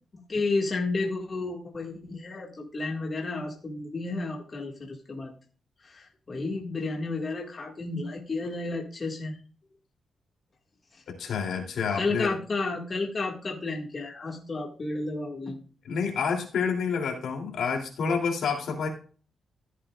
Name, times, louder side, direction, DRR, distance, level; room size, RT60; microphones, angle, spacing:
voice 1, 0.3-5.3 5.8-9.4 11.9-15.6, left 3 dB, 35° left, 0 dB, 2.0 m, -32 dB
voice 2, 11.1-12.3 15.8-18.9, left 6 dB, 75° left, 1 dB, 3.0 m, -28 dB
14.5 x 8.3 x 2.5 m, 0.39 s
cardioid pair, 115°, 0 cm